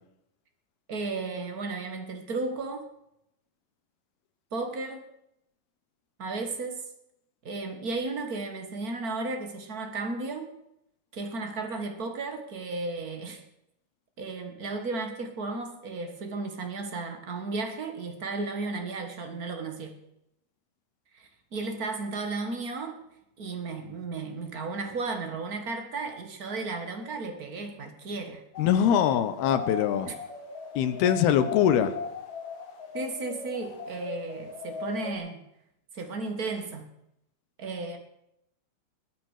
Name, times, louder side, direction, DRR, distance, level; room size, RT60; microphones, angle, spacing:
voice 1, 0.9-2.9 4.5-5.0 6.2-6.8 7.4-10.5 11.1-13.4 14.2-19.9 21.1-23.0 23.4-28.4 30.0-30.1 32.9-35.4 35.9-36.8 37.6-38.0, right 3 dB, 60° right, 5 dB, 0.9 m, -34 dB
sound 1, 28.5-35.1, left 5 dB, 50° left, 2.3 m, -38 dB
voice 2, 28.6-30.1 30.8-32.0, left 9 dB, 80° left, 12 dB, 3.1 m, -23 dB
21.0 x 9.5 x 6.6 m, 0.80 s
omnidirectional pair, 4.5 m